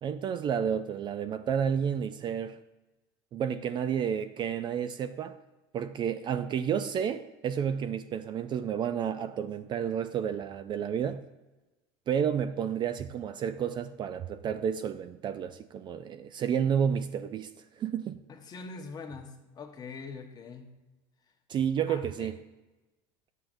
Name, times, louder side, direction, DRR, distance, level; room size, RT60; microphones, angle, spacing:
voice 1, 0.0-2.6 3.3-5.3 5.7-11.2 12.1-17.5 17.8-18.2 21.5-22.4, right 8 dB, 35° right, 0.3 m, -31 dB
voice 2, 18.3-20.7 21.9-22.3, left 4 dB, 30° left, 1.1 m, -43 dB
9.6 x 7.4 x 2.6 m
supercardioid pair, 115°, 14 cm